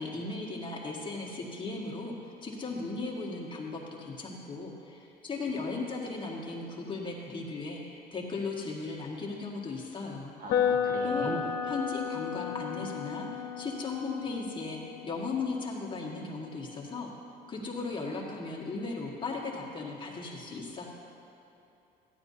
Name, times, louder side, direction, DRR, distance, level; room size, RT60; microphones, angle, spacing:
voice 1, 0.0-10.3 11.0-11.3 11.6-17.1 17.5-20.9, left 3 dB, 30° left, -3 dB, 1.7 m, -37 dB
voice 2, 10.4-11.4, right 2 dB, 55° right, 0 dB, 1.6 m, -39 dB
sound 1, 10.5-18.4, left 7 dB, 85° left, 0.8 m, -34 dB
14.5 x 10.5 x 2.8 m, 2.9 s
cardioid pair, 110°, 17 cm